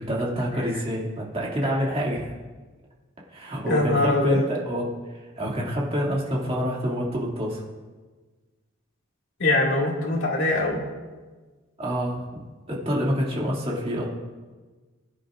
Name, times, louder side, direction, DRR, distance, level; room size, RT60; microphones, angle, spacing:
voice 1, 0.0-2.3 3.3-7.6 11.8-14.1, equal, 30° right, -3 dB, 2.4 m, -27 dB
voice 2, 3.7-4.4 9.4-10.8, left 2 dB, 65° left, -2 dB, 2.3 m, -22 dB
22.0 x 10.0 x 2.5 m, 1.3 s
head